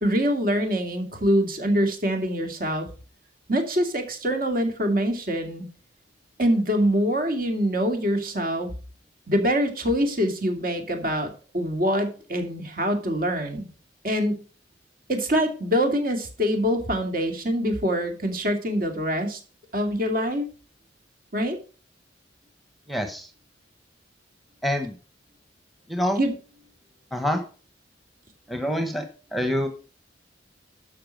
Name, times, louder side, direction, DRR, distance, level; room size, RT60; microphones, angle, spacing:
voice 1, 0.0-2.9 3.5-5.7 6.4-8.7 9.3-13.7 14.0-14.4 15.1-19.4 19.7-20.4 21.3-21.6 26.2-26.3, equal, 50° right, 4 dB, 2.3 m, -24 dB
voice 2, 22.9-23.3 24.6-24.9 25.9-26.2 27.1-27.4 28.5-29.0 29.3-29.7, equal, ahead, 6 dB, 1.1 m, -26 dB
12.5 x 5.8 x 5.3 m, 0.37 s
head